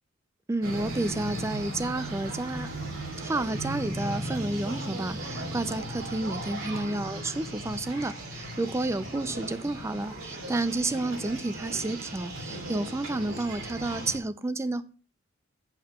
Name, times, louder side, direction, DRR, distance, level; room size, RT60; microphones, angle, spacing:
voice 1, 0.5-2.7 3.2-14.8, right 2 dB, 15° right, 13 dB, 0.3 m, -31 dB
sound 1, 0.6-14.2, right 1 dB, 90° right, 2.8 m, -37 dB
8.5 x 5.8 x 4.3 m, 0.39 s
head